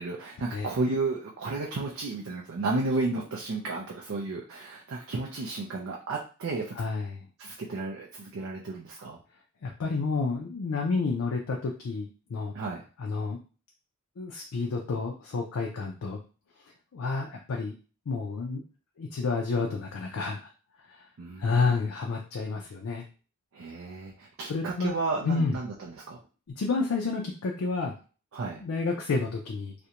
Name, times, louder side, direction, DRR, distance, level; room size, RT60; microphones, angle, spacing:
voice 1, 0.0-6.8 7.4-9.2 12.5-12.8 21.2-21.8 23.5-26.2 28.3-28.6, right 3 dB, 65° right, -2 dB, 0.4 m, -33 dB
voice 2, 6.8-7.2 9.6-12.5 13.0-13.4 14.2-16.2 16.9-17.7 18.1-18.6 19.0-20.4 20.9-21.1 21.4-23.0 24.5-24.9 25.2-25.6 26.6-27.9 28.6-29.7, left 4 dB, 80° left, 0 dB, 0.4 m, -30 dB
2.4 x 2.1 x 2.8 m, 0.36 s
head